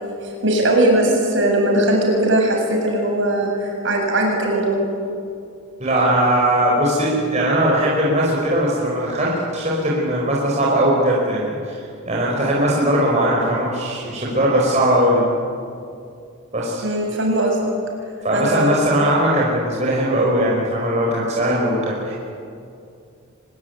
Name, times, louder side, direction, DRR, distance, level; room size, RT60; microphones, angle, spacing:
voice 1, 0.0-4.8 16.8-17.6 18.3-18.8, right 1 dB, 60° right, 0 dB, 7.8 m, -19 dB
voice 2, 5.8-15.3 16.5-16.8 18.2-22.1, right 1 dB, 30° right, -4 dB, 4.9 m, -19 dB
25.5 x 21.5 x 9.4 m, 2.4 s
head